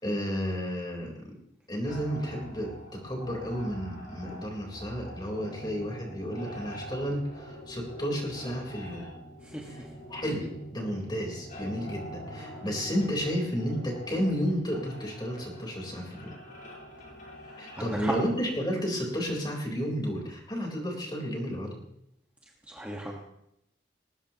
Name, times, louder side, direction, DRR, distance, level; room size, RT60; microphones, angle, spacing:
voice 1, 0.0-1.3 1.7-9.1 9.7-9.8 10.1-16.3 17.6-21.8, equal, 20° left, 0 dB, 3.8 m, -32 dB
sound 1, 1.9-18.5, equal, 45° left, 4.6 m, -44 dB
voice 2, 17.7-18.1 22.7-23.2, right 1 dB, 10° right, -2 dB, 1.4 m, -35 dB
20.0 x 18.5 x 2.9 m, 0.80 s
head